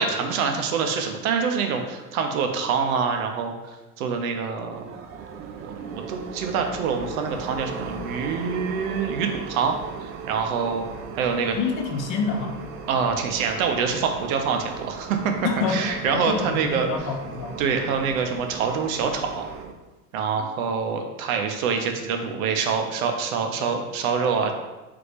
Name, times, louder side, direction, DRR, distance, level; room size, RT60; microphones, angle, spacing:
voice 1, 0.0-4.8 5.6-9.7 10.0-10.8 11.1-11.6 12.9-15.3 15.7-17.1 17.6-19.5 20.1-24.5, right 6 dB, 60° right, 4 dB, 0.7 m, -25 dB
sound 1, 4.7-19.7, right 5 dB, 30° right, 0.4 m, -38 dB
voice 2, 11.5-12.6 15.4-17.6, left 4 dB, 45° left, 2 dB, 0.8 m, -27 dB
3.8 x 3.3 x 3.4 m, 1.1 s
figure-of-eight pair, 70°, 47 cm